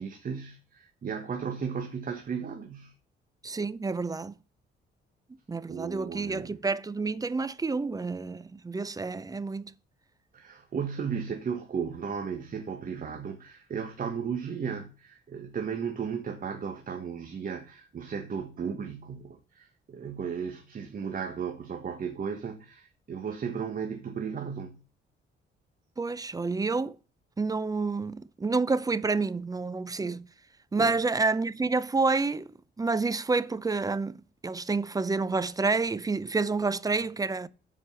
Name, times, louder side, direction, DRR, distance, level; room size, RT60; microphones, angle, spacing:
voice 1, 0.0-2.9 5.7-6.6 10.3-24.8 30.8-31.0, right 6 dB, 45° right, 1.4 m, -35 dB
voice 2, 3.4-4.3 5.5-9.7 26.0-27.0 27.4-30.3 30.7-32.5 32.8-37.5, right 3 dB, 20° right, 0.6 m, -29 dB
7.6 x 5.1 x 6.8 m
cardioid pair, 90°, 20 cm